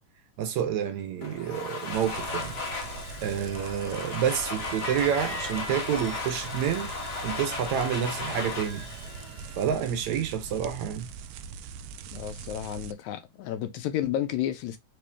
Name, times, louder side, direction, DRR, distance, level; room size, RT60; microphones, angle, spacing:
voice 1, 0.4-2.6 3.2-6.9 7.2-8.9 9.6-11.1, right 9 dB, 70° right, 2.2 m, -29 dB
Domestic sounds home sounds, 1.2-10.1, left 4 dB, 40° left, 1.6 m, -36 dB
sound 1, 1.9-12.9, right 6 dB, 85° right, 1.5 m, -42 dB
sound 2, 3.8-9.6, right 3 dB, 50° right, 1.6 m, -47 dB
voice 2, 12.1-14.8, left 11 dB, 80° left, 1.8 m, -31 dB
5.0 x 3.0 x 3.4 m
omnidirectional pair, 3.6 m